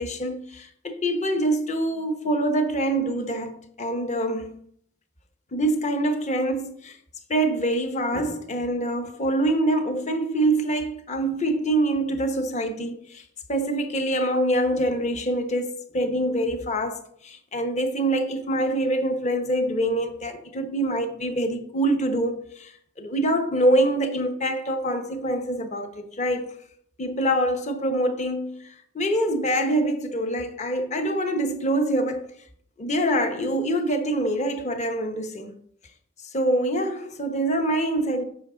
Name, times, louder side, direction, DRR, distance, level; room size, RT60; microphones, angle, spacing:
voice 1, 0.0-4.5 5.5-7.0 7.3-13.2 13.5-26.5 27.0-32.2 32.8-35.5 36.2-38.2, right 1 dB, 35° left, 0.8 m, -25 dB
8.0 x 5.6 x 3.8 m
head